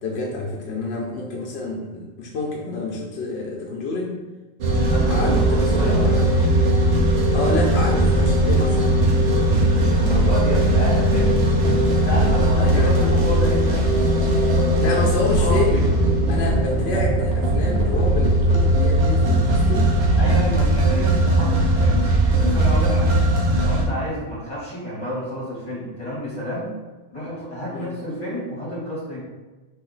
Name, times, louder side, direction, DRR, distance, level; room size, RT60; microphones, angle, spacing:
voice 1, 0.0-4.2 5.1-6.3 7.3-9.0 12.6-13.1 14.8-15.9 16.3-19.9 27.7-27.9, left 3 dB, 85° left, -1 dB, 0.8 m, -28 dB
sound 1, 4.6-23.9, right 1 dB, 85° right, 0.9 m, -18 dB
voice 2, 4.9-6.4 9.7-11.4 11.9-13.9 14.5-15.0 15.3-15.8 20.2-22.0 22.3-23.3 23.6-26.8 27.1-29.2, equal, 30° left, -7 dB, 1.4 m, -30 dB
2.8 x 2.7 x 3.9 m, 1.2 s
omnidirectional pair, 1.0 m